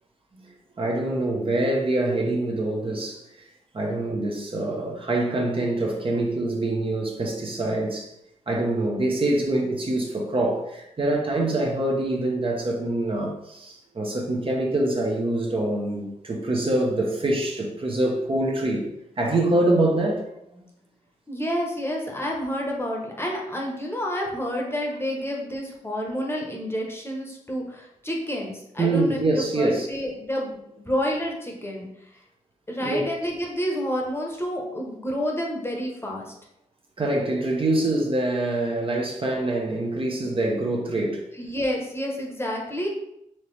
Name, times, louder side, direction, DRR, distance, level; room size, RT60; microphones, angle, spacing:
voice 1, 0.5-3.2 3.7-8.1 8.5-18.9 19.2-20.2 20.5-20.6 28.8-29.9 32.8-33.1 37.0-41.2, right 2 dB, 40° right, -1 dB, 0.9 m, -25 dB
voice 2, 21.3-32.2 32.7-36.3 41.4-42.9, equal, 20° left, -1 dB, 1.0 m, -29 dB
4.4 x 2.9 x 3.3 m, 0.81 s
cardioid pair, 70°, 14 cm